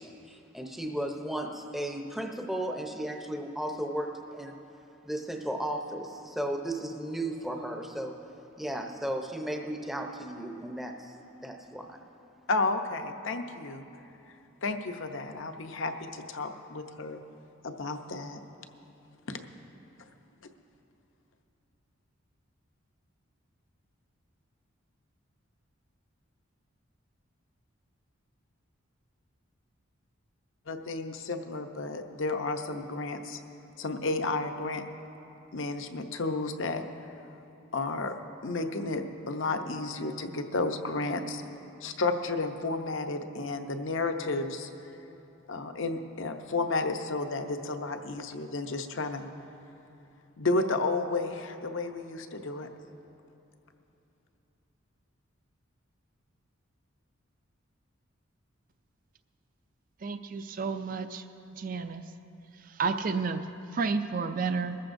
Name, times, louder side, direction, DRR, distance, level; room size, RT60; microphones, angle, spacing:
voice 1, 0.0-4.6 5.0-8.2 8.6-11.2 11.4-12.0, right 1 dB, ahead, 2 dB, 0.6 m, -35 dB
voice 2, 12.5-13.8 14.6-17.2 17.6-18.4 19.3-19.4 30.7-33.4 33.8-34.8 35.5-36.9 37.7-38.2 38.4-41.4 41.8-44.7 45.5-49.3 50.4-52.7, left 3 dB, 65° left, 6 dB, 0.7 m, -32 dB
voice 3, 60.0-61.2 61.5-62.1 62.5-64.8, right 4 dB, 40° right, 8 dB, 0.4 m, -31 dB
21.0 x 14.0 x 2.6 m, 3.0 s
head